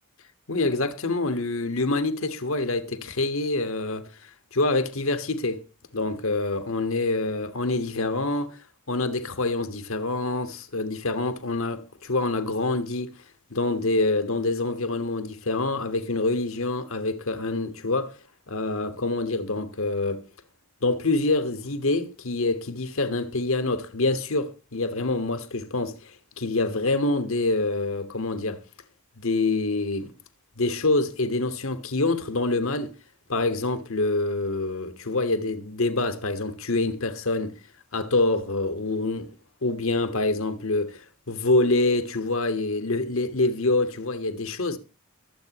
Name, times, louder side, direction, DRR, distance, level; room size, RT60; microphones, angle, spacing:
voice 1, 0.5-4.1 4.5-5.6 5.9-8.6 8.9-13.1 13.5-18.2 18.5-20.2 20.8-28.6 29.2-30.1 30.6-32.9 33.3-37.5 37.9-39.3 39.6-44.8, left 2 dB, 70° left, 1.4 m, -26 dB
23.5 x 8.1 x 3.0 m
head